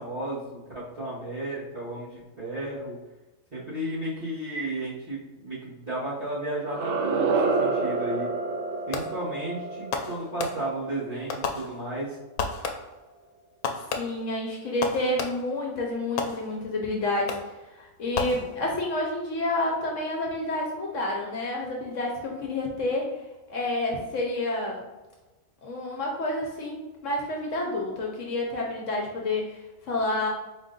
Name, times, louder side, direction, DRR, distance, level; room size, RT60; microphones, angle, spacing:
voice 1, 0.0-3.0 3.5-8.3 8.9-12.2, right 1 dB, 45° right, -11 dB, 1.3 m, -33 dB
sound 1, 6.6-11.5, right 4 dB, 65° right, 0.8 m, -29 dB
Fireworks, 8.9-9.4 9.9-10.9 11.3-12.1 12.4-13.1 13.6-15.6 16.2-16.8 17.3-17.7 18.1-18.9, left 5 dB, 90° left, 1.0 m, -33 dB
voice 2, 14.0-17.4 17.7-23.1 23.5-24.8 25.6-30.3, left 2 dB, 65° left, -1 dB, 1.0 m, -29 dB
4.3 x 2.5 x 3.7 m, 1.1 s
omnidirectional pair, 1.5 m